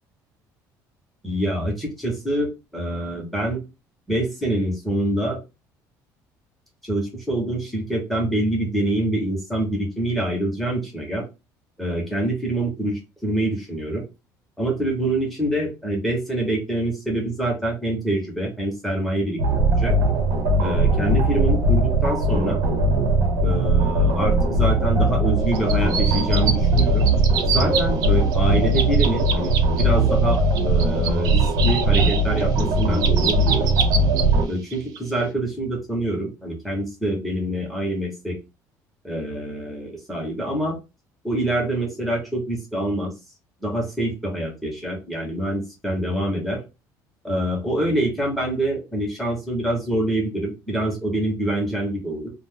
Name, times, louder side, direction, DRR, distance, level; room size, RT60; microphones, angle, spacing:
voice 1, 1.2-3.6 4.1-5.4 6.8-11.2 11.8-14.0 14.6-20.0 20.6-22.6 23.4-27.0 27.4-33.7 34.5-38.4 39.0-40.8 41.2-43.1 43.6-46.6 47.2-52.3, right 1 dB, ahead, -1 dB, 1.1 m, -25 dB
sound 1, 19.4-34.5, right 2 dB, 80° right, 1.0 m, -20 dB
sound 2, 25.5-26.5 26.8-28.1 28.3-29.8 30.3-34.2 34.7-35.0, right 7 dB, 65° right, 0.6 m, -26 dB
2.5 x 2.4 x 3.6 m, 0.26 s
cardioid pair, 170°, 7 cm